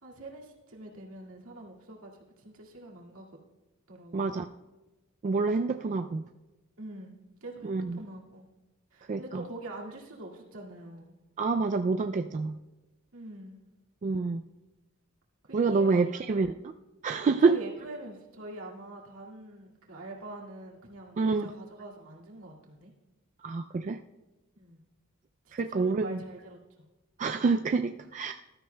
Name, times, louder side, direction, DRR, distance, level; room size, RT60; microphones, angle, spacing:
voice 1, 0.0-3.3 3.9-4.5 6.8-7.2 7.4-8.4 8.9-11.1 13.1-13.6 15.4-16.2 17.4-22.9 24.6-24.8 25.4-26.8, right 1 dB, 70° right, -2 dB, 2.1 m, -45 dB
voice 2, 4.1-4.5 5.2-6.2 7.6-8.0 9.1-9.4 11.4-12.6 14.0-14.4 15.5-16.7 17.0-17.6 21.2-21.5 23.4-24.0 25.5-26.2 27.2-28.3, right 4 dB, 35° right, 6 dB, 0.3 m, -27 dB
19.0 x 12.5 x 2.2 m, 1.1 s
head